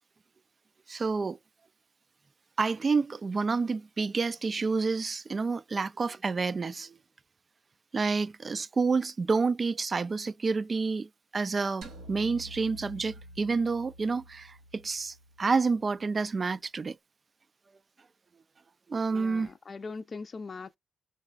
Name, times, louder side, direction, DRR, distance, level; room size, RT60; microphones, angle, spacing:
voice 1, 0.9-1.4 2.6-7.0 7.9-17.0 18.9-19.5, right 4 dB, 45° right, 0.4 m, -29 dB
sound 1, 11.8-16.2, equal, 80° right, 1.1 m, -49 dB
voice 2, 19.1-20.8, left 4 dB, 50° left, 0.5 m, -41 dB
4.0 x 3.8 x 2.3 m
supercardioid pair, 55°, 0 cm